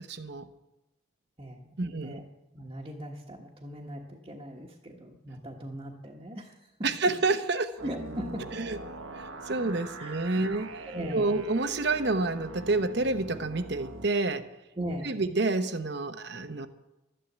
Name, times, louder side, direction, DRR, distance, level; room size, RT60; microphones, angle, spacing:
voice 1, 0.1-0.5 1.8-2.2 6.8-7.8 8.6-8.8 9.1-10.9 11.1-14.5 15.0-16.7, right 3 dB, 55° right, 10 dB, 0.9 m, -29 dB
voice 2, 1.4-2.2 2.5-6.5 6.8-6.9 7.8-8.6 10.0-10.4 10.9-11.4 14.8-15.2, equal, 25° right, -4 dB, 1.3 m, -39 dB
sound 1, 7.8-14.0, right 2 dB, 85° right, 1.3 m, -42 dB
12.5 x 10.0 x 8.0 m, 0.99 s
head